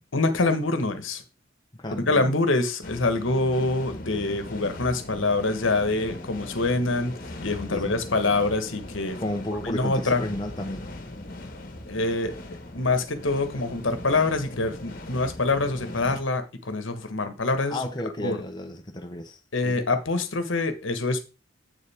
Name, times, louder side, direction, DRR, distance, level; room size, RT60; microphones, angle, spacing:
voice 1, 0.1-1.2 1.9-7.1 7.4-9.2 9.6-10.2 11.9-17.8 18.2-18.4 19.5-21.2, left 3 dB, 80° left, 1.3 m, -25 dB
voice 2, 1.7-2.3 7.7-7.9 9.2-10.9 17.7-19.4 19.6-19.9, left 1 dB, 20° left, 0.8 m, -32 dB
sound 1, 2.8-16.2, left 1 dB, 45° left, 1.4 m, -39 dB
8.0 x 7.1 x 3.5 m
head